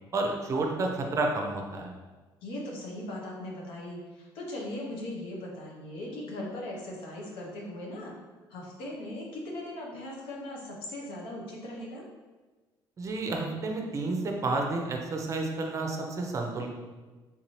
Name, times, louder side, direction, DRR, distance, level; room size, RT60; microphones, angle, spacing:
voice 1, 0.1-1.9 13.0-16.7, right 2 dB, 35° right, 2 dB, 0.6 m, -30 dB
voice 2, 2.4-8.1 8.5-12.0, left 1 dB, 80° left, -2 dB, 0.8 m, -39 dB
3.7 x 2.7 x 3.1 m, 1.3 s
cardioid pair, 105°, 9 cm